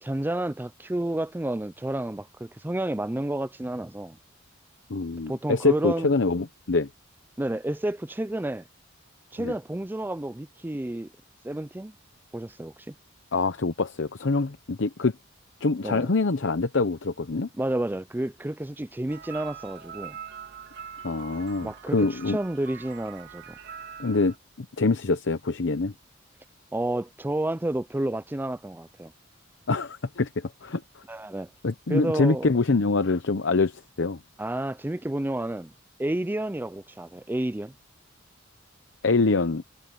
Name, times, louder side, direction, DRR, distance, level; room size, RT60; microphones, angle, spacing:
voice 1, 0.0-4.2 5.3-6.1 7.4-8.7 9.3-11.1 11.4-11.9 12.3-12.9 15.8-16.1 17.6-20.2 21.6-23.6 26.7-29.1 31.1-31.5 31.9-32.5 34.4-35.7 36.0-37.7, right 1 dB, 10° right, 0.4 m, -30 dB
voice 2, 4.9-6.9 9.4-9.5 13.3-15.1 15.6-17.5 21.0-22.4 24.0-25.9 29.7-31.0 31.6-34.2 39.0-39.6, left 3 dB, 65° left, 0.8 m, -25 dB
sound 1, 19.1-24.4, right 7 dB, 60° right, 2.4 m, -43 dB
head